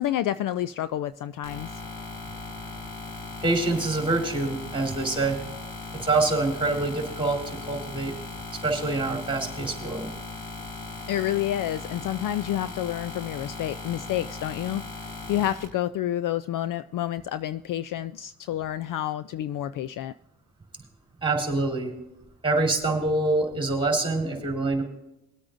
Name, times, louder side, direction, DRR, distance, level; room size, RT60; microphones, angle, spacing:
voice 1, 0.0-1.8 11.1-14.8 15.3-20.1, left 12 dB, 50° left, 14 dB, 0.5 m, -29 dB
sound 1, 1.4-15.6, left 3 dB, 90° left, 3.7 m, -38 dB
voice 2, 3.4-5.4 6.0-8.1 8.6-10.1 21.2-21.9 22.4-24.8, right 2 dB, 10° right, 1 dB, 3.6 m, -25 dB
23.5 x 8.6 x 2.6 m, 0.93 s
supercardioid pair, 85°, 44 cm